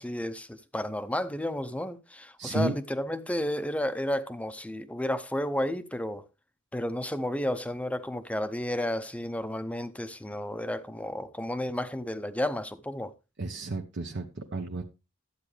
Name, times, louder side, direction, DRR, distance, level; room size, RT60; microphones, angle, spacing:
voice 1, 0.0-6.2 6.7-13.1, left 1 dB, 5° left, 0.7 m, -32 dB
voice 2, 2.4-2.8 13.4-14.8, right 2 dB, 60° right, 0.9 m, -32 dB
12.0 x 8.2 x 3.3 m
head